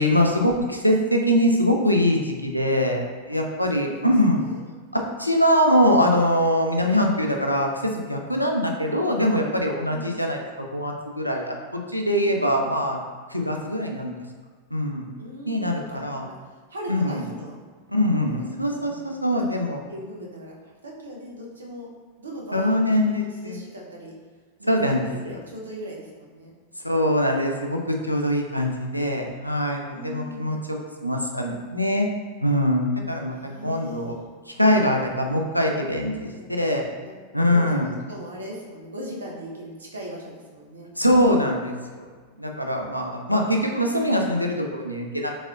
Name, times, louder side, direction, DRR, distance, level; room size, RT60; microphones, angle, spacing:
voice 1, 0.0-4.4 4.9-13.0 13.3-14.1 14.7-15.0 15.5-16.2 16.9-17.2 17.9-19.8 22.5-23.6 24.7-25.0 26.8-30.6 31.0-32.1 32.4-33.4 33.6-34.2 34.6-36.8 37.3-37.9 41.0-42.0 42.4-45.3, equal, 90° left, 1 dB, 0.4 m, -23 dB
voice 2, 3.7-4.6 9.8-10.3 12.3-12.8 15.2-16.4 16.7-17.6 18.3-19.0 19.3-19.4 19.9-20.6 20.8-21.9 22.2-24.1 24.6-26.5 29.9-30.5 33.3-34.2 36.1-36.7 37.0-37.1 37.5-40.9, equal, 75° right, -2 dB, 0.7 m, -39 dB
4.1 x 3.6 x 2.3 m, 1.5 s
figure-of-eight pair, 90°, 0 cm